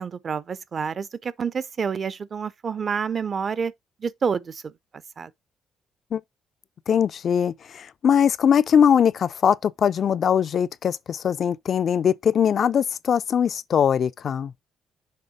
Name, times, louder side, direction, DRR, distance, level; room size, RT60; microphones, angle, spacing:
voice 1, 0.0-3.7 4.0-4.7 5.2-5.3, right 6 dB, 45° right, 0.6 m, -28 dB
voice 2, 6.9-14.5, left 8 dB, 55° left, 0.4 m, -21 dB
6.6 x 3.5 x 5.0 m
cardioid pair, 90°, 0 cm